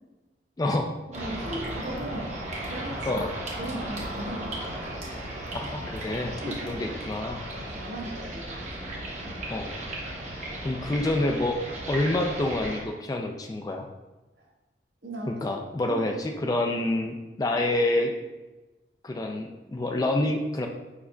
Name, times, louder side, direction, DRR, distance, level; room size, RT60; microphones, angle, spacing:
voice 1, 0.6-0.9 3.1-3.3 5.5-6.4 6.6-7.5 9.5-9.8 10.6-11.6 11.9-13.9 15.3-18.1 19.0-20.7, left 2 dB, 20° left, 3 dB, 0.3 m, -27 dB
sound 1, 1.1-12.8, right 1 dB, 40° right, 0.9 m, -36 dB
voice 2, 1.1-2.4 2.7-3.2 3.6-4.7 6.4-6.9 7.5-9.4 14.4-14.5 15.0-15.5 15.8-16.1, right 1 dB, 65° right, -3 dB, 1.2 m, -38 dB
4.8 x 4.7 x 2.2 m, 1.1 s
head